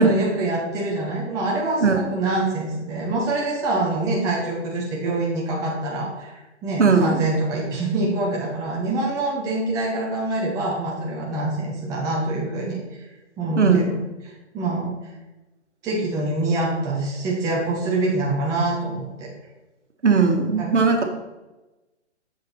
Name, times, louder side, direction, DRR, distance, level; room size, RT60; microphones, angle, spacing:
voice 1, 0.0-12.8 13.4-14.0 14.2-14.9 15.8-19.3 20.6-20.7, right 2 dB, 10° right, -3 dB, 0.8 m, -25 dB
voice 2, 6.8-7.2 13.6-13.9 20.0-21.0, right 4 dB, 75° right, 4 dB, 1.4 m, -18 dB
7.0 x 5.2 x 4.3 m, 1.1 s
figure-of-eight pair, 135°, 36 cm